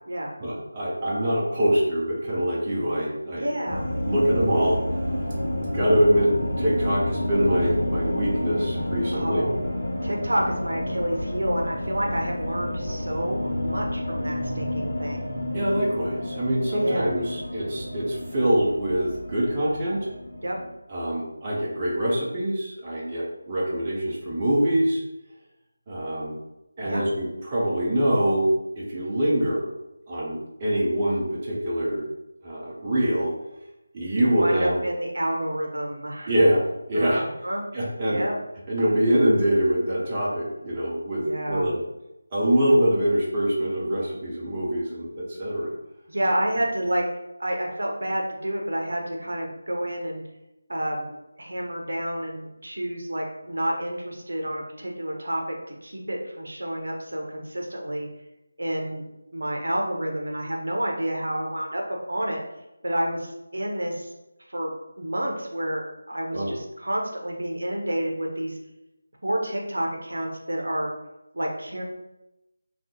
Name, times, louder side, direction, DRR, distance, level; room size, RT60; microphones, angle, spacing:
voice 1, 0.4-3.5 4.0-4.8 5.7-6.3 6.6-9.5 15.5-20.1 20.9-25.0 25.9-26.4 26.8-29.7 30.1-32.0 32.4-33.3 33.9-34.8 36.3-36.6 36.9-37.2 37.7-38.2 38.7-41.8 42.3-45.7 66.3-66.5, equal, 20° right, -6 dB, 0.5 m, -24 dB
voice 2, 3.4-3.8 9.1-9.5 10.0-15.3 16.8-17.1 20.4-20.6 26.8-27.1 34.2-36.3 36.9-37.6 38.0-38.4 41.2-41.7 46.1-47.0 47.4-50.2 50.7-51.1 51.4-55.4 55.8-58.1 58.6-59.0 59.3-61.8 62.1-62.4 62.8-64.1 64.5-68.6 69.2-70.9 71.3-71.8, right 1 dB, 60° right, 0 dB, 0.7 m, -29 dB
sound 1, 3.7-20.7, left 1 dB, 40° left, 1.0 m, -30 dB
3.5 x 2.3 x 2.8 m, 0.92 s
figure-of-eight pair, 160°, 0 cm